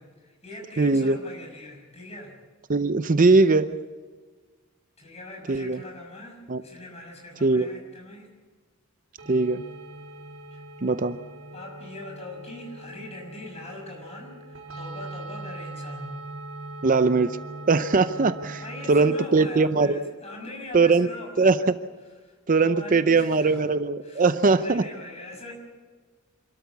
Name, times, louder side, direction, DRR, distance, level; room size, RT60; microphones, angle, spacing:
voice 1, 0.0-2.3 5.0-8.3 10.5-10.6 11.5-16.2 18.6-21.6 22.2-23.7 24.0-25.5, left 1 dB, 30° left, 1 dB, 6.3 m, -41 dB
voice 2, 0.8-1.2 2.7-3.7 5.5-5.8 6.5-6.6 7.4-7.7 9.3-9.6 10.8-11.2 16.8-17.4 17.7-18.6 18.9-20.0 20.7-21.1 21.4-21.5 22.5-24.8, right 3 dB, 40° right, 11 dB, 0.6 m, -20 dB
sound 1, 9.2-19.3, right 2 dB, 70° right, 4.3 m, -41 dB
27.0 x 13.0 x 8.3 m, 1.4 s
head